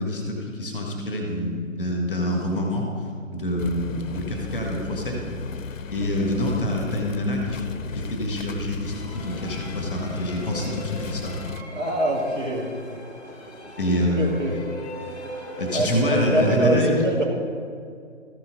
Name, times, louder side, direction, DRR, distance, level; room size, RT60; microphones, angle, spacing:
voice 1, 0.0-2.9 3.3-5.2 5.9-7.6 7.9-11.5 13.8-14.3 15.6-16.9, equal, 5° left, 0 dB, 1.0 m, -26 dB
sound 1, 3.6-11.6, left 6 dB, 75° left, 0.5 m, -36 dB
sound 2, 8.9-16.7, left 1 dB, 15° right, 0.6 m, -37 dB
voice 2, 11.8-12.7 14.2-14.6 15.7-17.3, right 1 dB, 75° right, -1 dB, 2.1 m, -24 dB
13.5 x 5.8 x 4.0 m, 2.2 s
figure-of-eight pair, 150°, 39 cm